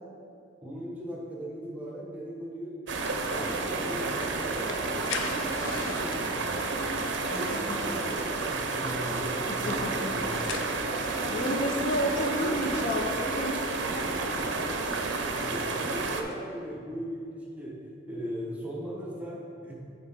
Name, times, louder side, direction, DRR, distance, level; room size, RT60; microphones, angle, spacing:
voice 1, 0.6-2.8 3.2-11.2 13.5-13.7 13.9-14.1 15.3-19.8, equal, 10° right, -3 dB, 0.9 m, -39 dB
sound 1, 2.9-16.2, right 3 dB, 65° right, 0.5 m, -30 dB
sound 2, 4.0-16.3, left 5 dB, 85° left, 0.5 m, -45 dB
voice 2, 7.2-7.8 9.5-10.0 11.3-14.1, equal, 40° left, 3 dB, 0.6 m, -31 dB
8.8 x 3.8 x 3.9 m, 2.5 s
head